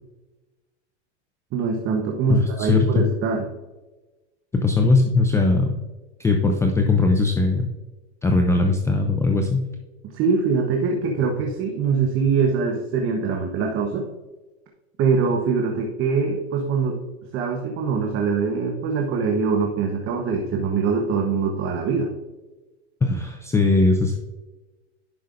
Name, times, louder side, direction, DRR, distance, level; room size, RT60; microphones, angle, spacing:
voice 1, 1.5-3.5 10.0-14.1 15.0-17.0 17.3-22.1, right 5 dB, 35° right, 1 dB, 1.0 m, -23 dB
voice 2, 2.3-3.0 4.5-5.8 6.2-7.7 8.2-9.6 23.0-24.2, left 3 dB, 10° left, 3 dB, 0.4 m, -19 dB
10.5 x 5.5 x 2.5 m, 1.1 s
supercardioid pair, 125°, 35 cm